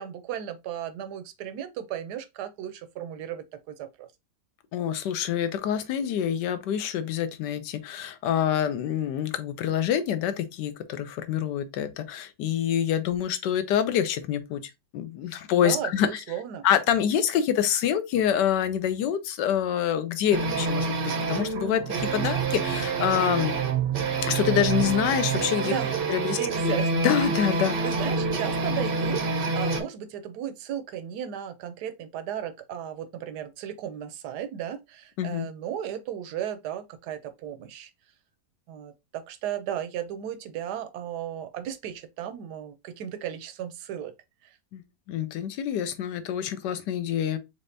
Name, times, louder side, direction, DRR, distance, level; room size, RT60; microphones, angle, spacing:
voice 1, 0.0-4.1 15.5-16.6 25.6-25.9 26.2-26.9 27.6-37.9 38.7-44.1 44.4-44.6, right 10 dB, 75° right, 1.1 m, -35 dB
voice 2, 4.7-16.2 16.6-20.9 21.3-23.5 24.3-25.7 26.1-26.4 26.6-26.8 27.0-27.8 35.2-35.5 44.7-44.8 45.1-47.4, left 9 dB, 80° left, 1.2 m, -26 dB
sound 1, 20.3-29.8, right 4 dB, 55° right, 0.6 m, -27 dB
4.3 x 3.4 x 2.5 m
omnidirectional pair, 1.9 m